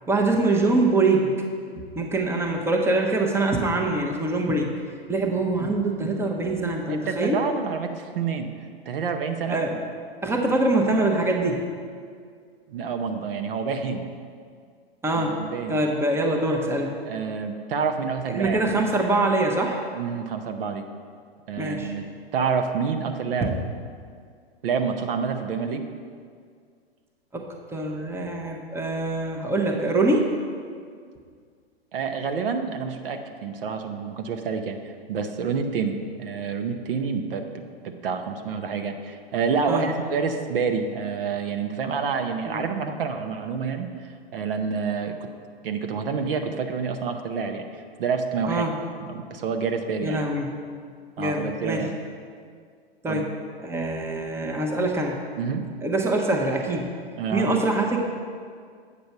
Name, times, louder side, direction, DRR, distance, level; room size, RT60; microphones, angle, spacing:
voice 1, 0.1-1.3 2.0-4.7 5.1-7.4 9.5-9.8 10.2-11.7 15.0-15.4 15.7-17.0 18.3-19.8 21.6-21.9 27.3-27.4 27.7-30.3 39.7-39.9 42.5-42.6 48.5-48.7 50.0-50.6 51.2-51.8 53.0-53.3 53.6-55.2 55.8-56.9 57.3-58.0, right 2 dB, 10° right, 1 dB, 0.8 m, -24 dB
voice 2, 6.9-8.5 8.9-9.6 12.7-14.1 15.1-15.9 17.0-18.6 19.9-20.8 21.5-22.1 22.3-23.5 24.6-25.8 31.9-37.4 37.8-45.3 45.6-48.7 49.0-50.2 51.2-51.9 53.0-53.2 55.4-55.7 57.2-57.5, right 5 dB, 60° right, 6 dB, 0.8 m, -28 dB
8.3 x 5.1 x 5.9 m, 2.1 s
hypercardioid pair, 110°, 31 cm